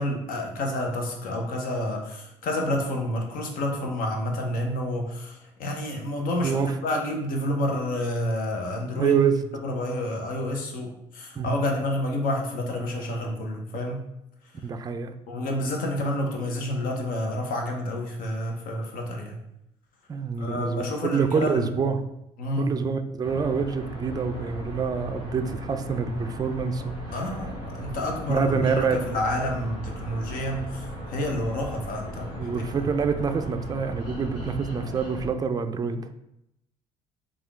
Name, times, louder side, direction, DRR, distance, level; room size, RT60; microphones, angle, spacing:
voice 1, 0.0-9.2 9.5-14.0 15.3-19.4 20.4-21.7 22.4-22.7 27.1-32.5, left 1 dB, 60° left, 2 dB, 0.9 m, -29 dB
voice 2, 6.4-6.8 9.0-9.4 11.4-11.6 14.6-15.1 20.1-22.1 22.6-27.0 28.3-29.0 32.4-36.1, right 5 dB, 25° right, 8 dB, 0.4 m, -26 dB
sound 1, 23.2-35.3, right 1 dB, 90° left, 1.1 m, -37 dB
3.5 x 2.5 x 3.4 m, 0.81 s
hypercardioid pair, 60°, 16 cm